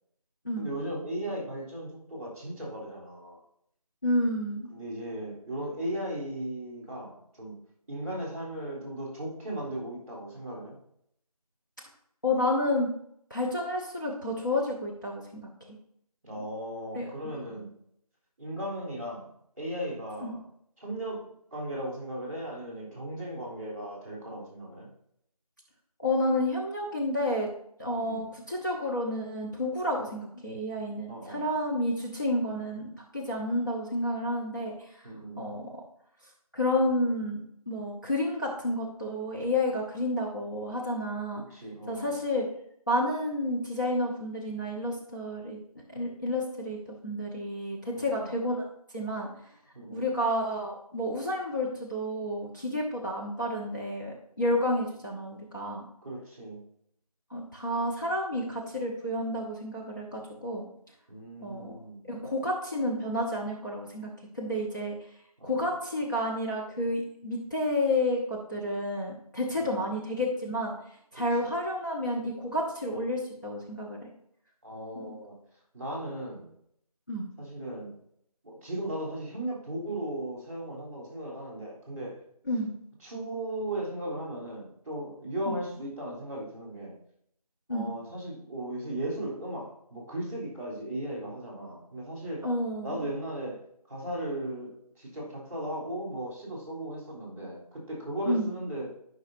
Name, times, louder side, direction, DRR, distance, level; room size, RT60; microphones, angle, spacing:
voice 1, 0.6-3.4 4.7-7.6 7.9-10.8 16.2-17.7 18.4-19.3 19.6-20.4 20.8-24.9 27.9-28.3 31.1-31.5 35.0-35.4 41.5-42.2 47.9-48.3 49.7-50.1 56.0-56.6 61.1-62.1 65.4-65.7 69.6-70.0 71.1-71.5 74.6-75.4 75.7-76.5 77.4-77.9 78.4-82.2 83.0-87.0 87.7-92.5 92.8-98.9, right 1 dB, 25° right, -4 dB, 3.1 m, -37 dB
voice 2, 4.0-4.7 12.2-12.9 13.3-15.5 16.9-17.1 17.5-17.7 20.2-20.4 26.0-27.5 27.8-35.1 35.4-35.7 36.5-41.4 41.9-42.4 42.9-45.6 45.9-48.6 48.9-49.3 49.9-55.8 57.3-60.6 61.4-61.7 62.0-65.0 65.4-70.7 71.1-74.1 74.9-75.1 77.1-77.3 82.5-82.7 85.5-85.6 87.7-87.9 92.4-92.9 98.3-98.5, left 1 dB, 30° left, -4 dB, 1.0 m, -30 dB
12.0 x 5.6 x 2.7 m, 0.71 s
figure-of-eight pair, 180°, 20 cm